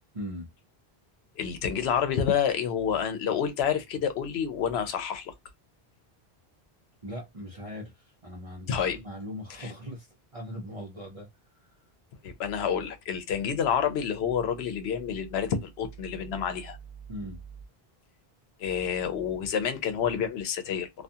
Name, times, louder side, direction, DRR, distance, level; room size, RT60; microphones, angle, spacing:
voice 1, 0.1-0.5 7.0-11.3 11.5-11.8 17.1-17.4, equal, 40° right, 0.6 m, -40 dB
voice 2, 1.4-5.3 8.7-9.0 9.6-9.7 12.2-16.8 18.6-20.9, left 7 dB, 90° left, 0.9 m, -28 dB
2.4 x 2.3 x 2.7 m
omnidirectional pair, 1.0 m